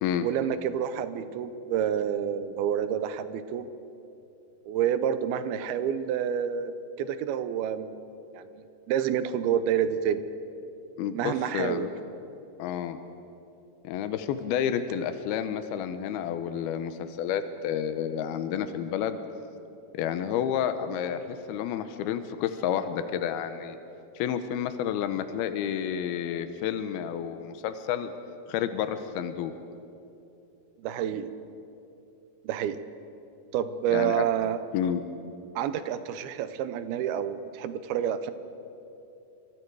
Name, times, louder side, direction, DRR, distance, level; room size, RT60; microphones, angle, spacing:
voice 1, 0.2-3.7 4.7-6.7 7.0-7.9 8.3-10.2 11.1-11.9 30.8-31.3 32.4-32.8 33.5-34.6 35.6-38.3, right 9 dB, 85° right, 11 dB, 2.8 m, -28 dB
voice 2, 11.0-11.9 12.6-13.0 13.8-19.2 19.9-23.8 24.2-28.1 28.5-29.5 33.9-34.2 34.7-35.0, left 9 dB, 85° left, 9 dB, 2.8 m, -30 dB
29.0 x 24.5 x 4.8 m, 2.8 s
omnidirectional pair, 4.4 m